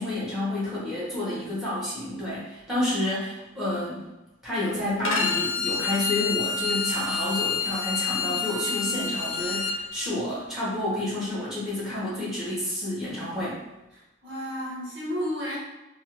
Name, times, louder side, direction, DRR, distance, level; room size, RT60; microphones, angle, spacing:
voice 1, 0.0-4.0 4.4-13.6, left 1 dB, ahead, -8 dB, 0.9 m, -29 dB
Bowed string instrument, 5.0-9.8, left 5 dB, 65° left, 0.4 m, -28 dB
voice 2, 13.9-15.6, equal, 60° right, -9 dB, 1.3 m, -32 dB
2.5 x 2.1 x 2.9 m, 1.0 s
head